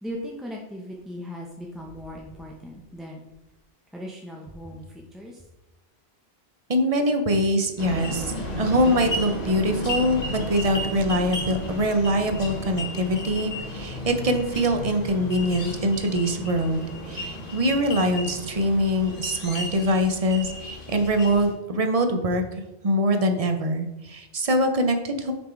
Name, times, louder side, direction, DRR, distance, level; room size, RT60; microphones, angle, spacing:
voice 1, 0.0-3.2 3.9-5.4, equal, ahead, -1 dB, 0.5 m, -38 dB
voice 2, 6.7-25.3, equal, 40° right, 6 dB, 0.8 m, -24 dB
sound 1, 7.8-21.5, left 1 dB, 40° left, 1.4 m, -33 dB
6.3 x 4.4 x 4.6 m, 0.96 s
omnidirectional pair, 1.1 m